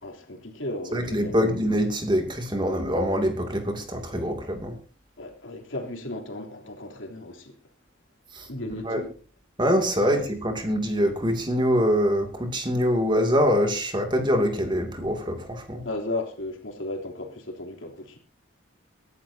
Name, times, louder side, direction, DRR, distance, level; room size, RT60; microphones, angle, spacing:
voice 1, 0.0-1.5 5.2-7.5 8.5-9.1 10.0-10.3 15.8-18.2, left 2 dB, 80° left, 3.3 m, -35 dB
voice 2, 0.9-4.7 8.3-8.5 8.9-9.0 9.6-15.8, equal, 25° right, 2.5 m, -24 dB
23.0 x 12.0 x 2.8 m
head